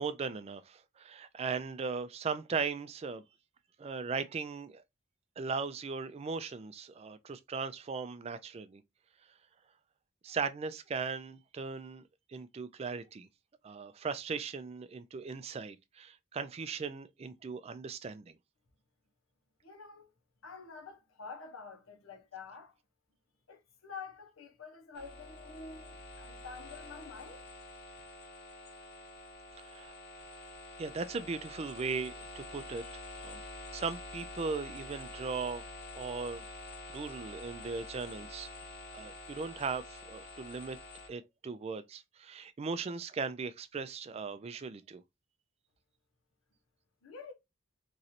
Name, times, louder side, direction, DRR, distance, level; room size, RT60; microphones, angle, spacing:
voice 1, 0.0-3.2 3.8-4.8 5.4-8.8 10.2-12.0 12.3-13.3 13.6-18.4 29.6-30.0 30.8-33.4 33.7-35.6 35.9-36.5 36.9-38.5 38.9-40.8 41.1-45.0, right 5 dB, 30° right, 0.3 m, -38 dB
voice 2, 19.6-20.1 20.4-22.8 23.5-27.5 47.0-47.3, left 5 dB, 80° left, 0.9 m, -48 dB
sound 1, 24.9-41.1, left 2 dB, 50° left, 0.7 m, -47 dB
3.1 x 2.5 x 2.7 m
head